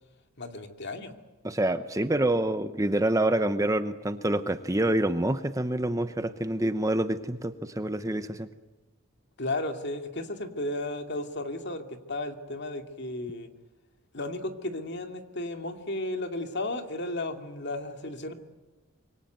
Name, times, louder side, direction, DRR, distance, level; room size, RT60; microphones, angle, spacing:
voice 1, 0.4-1.1 9.4-13.5 14.1-18.3, left 2 dB, 50° left, 6 dB, 2.5 m, -34 dB
voice 2, 1.4-8.5, right 1 dB, 15° right, 10 dB, 0.8 m, -27 dB
26.0 x 23.5 x 9.3 m, 1.1 s
head